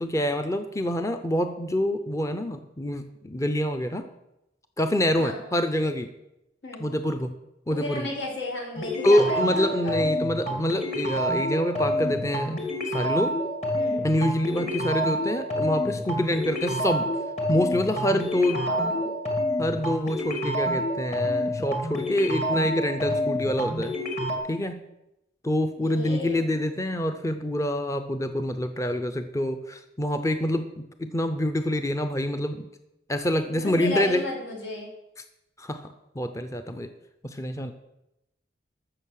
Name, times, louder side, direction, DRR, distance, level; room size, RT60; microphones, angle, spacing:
voice 1, 0.0-4.1 4.8-6.1 6.8-7.3 7.7-8.1 9.0-12.6 12.8-13.4 14.0-17.1 17.5-18.7 19.6-23.9 24.5-24.8 25.4-32.7 33.1-34.2 35.6-36.9 37.2-37.7, left 1 dB, 20° left, 7 dB, 0.6 m, -26 dB
voice 2, 7.8-10.0 13.8-14.1 14.5-14.7 18.5-19.1 25.8-26.5 33.4-34.9, left 2 dB, 85° left, -3 dB, 4.6 m, -34 dB
sound 1, 8.8-24.4, equal, 40° left, 2.1 m, -28 dB
13.5 x 6.7 x 6.5 m, 0.89 s
head